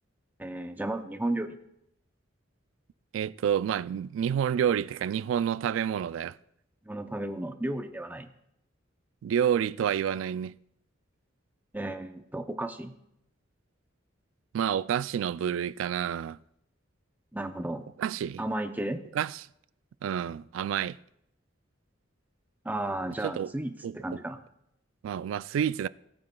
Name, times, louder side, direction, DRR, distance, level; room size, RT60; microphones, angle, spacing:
voice 1, 0.4-1.6 6.9-8.3 11.7-12.9 17.3-17.9 18.4-19.0 22.6-24.4, right 1 dB, 10° right, 0.6 m, -33 dB
voice 2, 3.1-6.4 9.2-10.5 14.5-16.4 18.0-18.4 19.1-19.4 20.0-21.0 23.2-23.5 23.8-24.0 25.0-25.9, right 9 dB, 85° right, 0.3 m, -29 dB
19.5 x 8.7 x 2.3 m
head